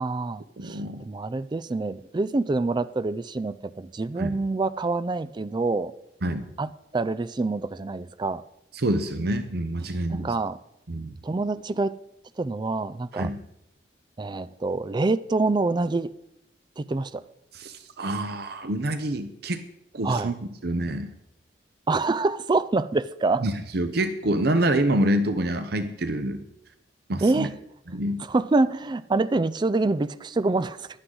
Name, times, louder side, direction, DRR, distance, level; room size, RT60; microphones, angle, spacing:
voice 1, 0.0-5.9 6.6-8.4 10.1-10.6 11.2-12.0 12.4-13.3 14.2-16.1 16.8-17.2 20.0-20.3 21.9-23.4 27.2-27.5 28.2-30.9, right 3 dB, 25° right, 0.4 m, -26 dB
voice 2, 0.6-1.1 4.2-4.4 6.2-6.5 8.7-10.3 10.9-11.1 13.1-13.4 17.5-19.6 19.9-20.3 20.6-21.1 23.4-26.4 27.1-27.5 27.9-28.2, right 1 dB, 65° right, 0.8 m, -26 dB
16.0 x 11.5 x 3.9 m
head